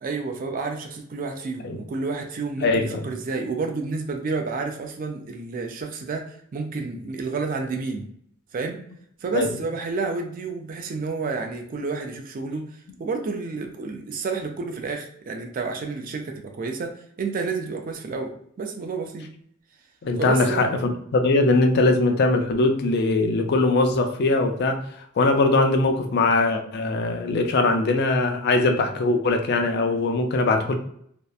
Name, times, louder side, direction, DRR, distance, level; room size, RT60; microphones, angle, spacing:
voice 1, 0.0-8.1 8.5-8.8 9.2-12.7 13.0-19.3 20.2-20.7, right 4 dB, 45° right, 4 dB, 0.4 m, -30 dB
voice 2, 2.6-3.0 9.3-9.5 20.0-24.8 25.2-30.7, left 2 dB, 55° left, 5 dB, 0.4 m, -21 dB
2.7 x 2.1 x 2.2 m, 0.67 s
head